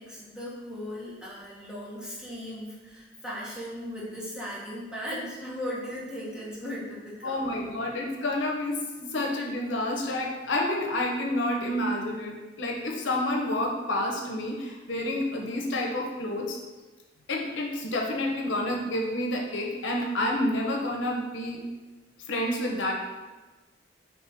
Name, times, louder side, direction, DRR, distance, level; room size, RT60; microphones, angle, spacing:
voice 1, 0.0-7.5, equal, 5° right, -7 dB, 0.9 m, -37 dB
voice 2, 7.2-16.6 17.3-21.6 22.3-22.9, left 1 dB, 80° left, 0 dB, 0.7 m, -29 dB
4.4 x 3.0 x 3.4 m, 1.2 s
head